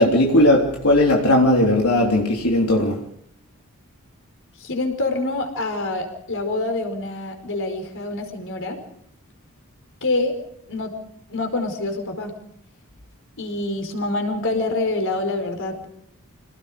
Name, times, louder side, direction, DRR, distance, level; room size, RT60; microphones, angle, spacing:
voice 1, 0.0-3.0, left 1 dB, 85° left, 3.5 m, -17 dB
voice 2, 4.6-8.8 10.0-10.4 10.7-10.9 11.3-12.3 13.4-15.9, left 2 dB, 60° left, 4.9 m, -26 dB
27.5 x 19.0 x 5.1 m
head